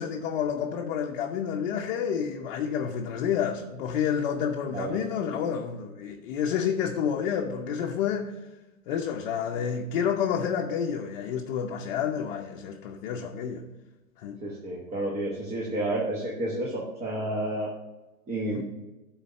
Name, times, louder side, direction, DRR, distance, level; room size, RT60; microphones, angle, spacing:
voice 1, 0.0-8.4 8.9-13.7 14.2-14.4 18.5-18.6, left 8 dB, 45° left, 0.8 m, -29 dB
voice 2, 14.4-17.7 18.3-18.6, right 1 dB, 15° right, 1.1 m, -30 dB
10.0 x 4.0 x 5.4 m
hypercardioid pair, 130°, 41 cm